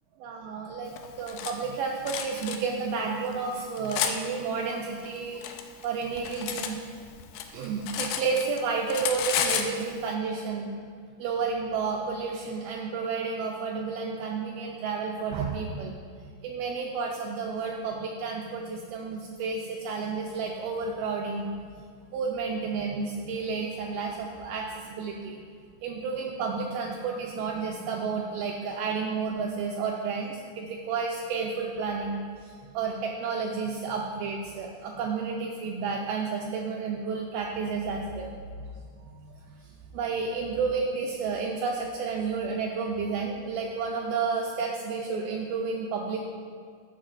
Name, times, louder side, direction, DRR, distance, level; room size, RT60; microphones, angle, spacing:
voice 1, 0.2-5.4 5.8-6.8 7.5-10.7 11.2-15.9 16.4-21.5 22.1-25.4 25.8-32.2 32.7-38.3 39.0-39.2 39.5-39.6 39.9-46.3, right 5 dB, 90° right, 0 dB, 2.1 m, -31 dB
Cutlery silverware, 1.0-1.5 2.1-2.6 3.3-4.2 5.0-6.7 7.1-8.6 8.9-9.7, left 9 dB, 85° left, 2.7 m, -31 dB
12.5 x 6.3 x 2.5 m, 2.1 s
omnidirectional pair, 4.9 m